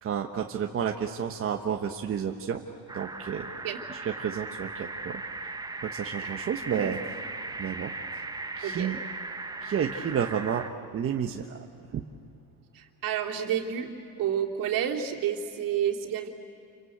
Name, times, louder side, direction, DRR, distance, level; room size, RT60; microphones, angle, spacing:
voice 1, 0.0-2.6 2.9-3.5 3.9-5.5 5.8-7.0 7.6-8.2 8.6-9.0 9.6-11.6 11.9-12.0, right 8 dB, 35° right, 3 dB, 1.2 m, -31 dB
sound 1, 2.9-10.7, right 3 dB, 10° right, 0.9 m, -38 dB
voice 2, 8.6-8.9 12.7-13.9 14.2-16.3, right 9 dB, 55° right, 0 dB, 3.1 m, -30 dB
29.0 x 25.0 x 8.0 m, 2.7 s
cardioid pair, 120°, 39 cm